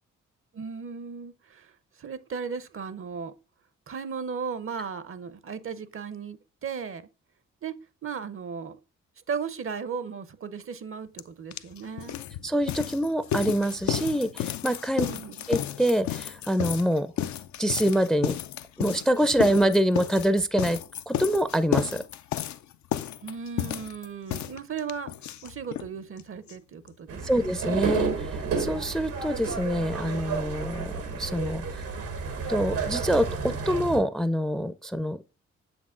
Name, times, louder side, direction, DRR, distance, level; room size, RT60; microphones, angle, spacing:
voice 1, 0.5-1.7 2.0-3.3 3.9-7.1 7.6-7.8 8.0-8.8 9.3-12.2 15.1-15.5 23.2-25.1 25.4-27.5, right 6 dB, 45° right, 0.7 m, -36 dB
sound 1, 11.2-11.3 11.5-25.9 26.2-26.3 26.5-26.6 26.9-27.0, left 11 dB, 65° left, 0.5 m, -32 dB
voice 2, 12.4-15.1 15.5-17.1 17.6-18.4 18.8-20.8 21.1-22.0 27.2-31.8 32.5-35.2, equal, ahead, 0.5 m, -25 dB
sound 2, 27.1-34.0, right 5 dB, 85° right, 1.5 m, -31 dB
7.0 x 6.1 x 2.4 m
supercardioid pair, 45°, 31 cm